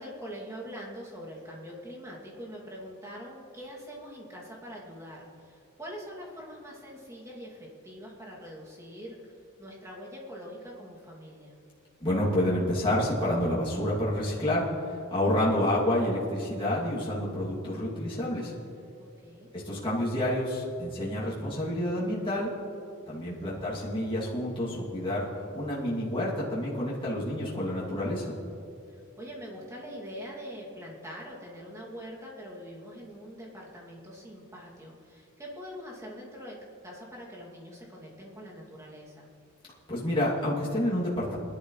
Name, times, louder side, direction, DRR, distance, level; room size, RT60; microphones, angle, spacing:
voice 1, 0.0-9.3 9.6-11.5 19.0-19.5 23.2-23.7 28.9-36.5 36.8-39.3, equal, 15° right, -4 dB, 2.6 m, -44 dB
voice 2, 12.0-18.5 19.5-22.5 23.1-25.3 25.5-28.3 39.9-41.4, left 1 dB, 25° left, -8 dB, 2.7 m, -29 dB
21.0 x 12.0 x 3.3 m, 2.7 s
head